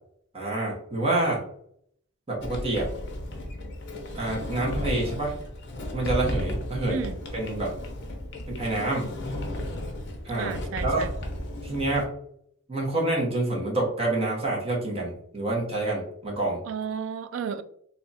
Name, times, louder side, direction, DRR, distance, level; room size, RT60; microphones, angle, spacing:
voice 1, 0.3-1.4 2.3-2.9 4.1-5.4 5.9-7.0 7.3-7.7 8.5-9.1 10.2-11.1 11.6-12.1 12.7-16.6, right 2 dB, 30° right, -3 dB, 1.1 m, -27 dB
Sliding door, 2.4-12.0, left 1 dB, 55° left, 0.7 m, -34 dB
voice 2, 10.4-11.1 16.7-17.6, right 6 dB, 65° right, 11 dB, 0.3 m, -32 dB
2.8 x 2.4 x 4.0 m, 0.67 s
head